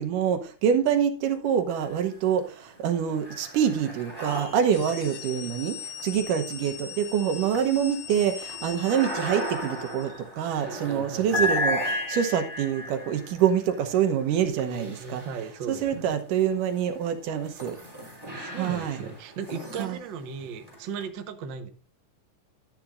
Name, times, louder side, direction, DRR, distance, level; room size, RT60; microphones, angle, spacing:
voice 1, 0.0-5.8 6.0-15.2 15.7-17.8 18.6-19.0 19.8-20.0, right 8 dB, 90° right, 2.6 m, -26 dB
sound 1, 1.7-2.4 2.7-15.9 16.6-21.0, left 1 dB, 5° right, 2.8 m, -35 dB
sound 2, 4.5-10.2, left 9 dB, 90° left, 1.2 m, -41 dB
voice 2, 10.6-11.5 14.3-16.2 18.2-21.7, right 6 dB, 65° right, 1.1 m, -37 dB
12.0 x 10.0 x 2.5 m
omnidirectional pair, 3.6 m